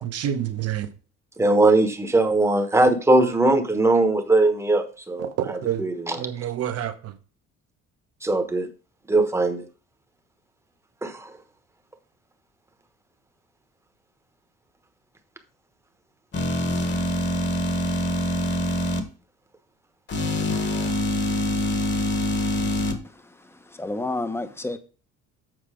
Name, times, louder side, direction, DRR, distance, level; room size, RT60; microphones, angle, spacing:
voice 1, 0.0-0.9 5.2-5.8 6.1-7.2, right 10 dB, 50° right, 1.1 m, -28 dB
voice 2, 1.4-5.3 5.8-6.2 8.2-8.7 9.1-9.6 11.0-11.3, right 2 dB, 10° right, 1.1 m, -20 dB
sound 1, 16.3-19.0 20.1-22.9, left 1 dB, 35° left, 1.4 m, -25 dB
voice 3, 23.0-24.8, left 2 dB, 10° left, 0.8 m, -31 dB
7.8 x 5.7 x 4.9 m
cardioid pair, 140°, 30 cm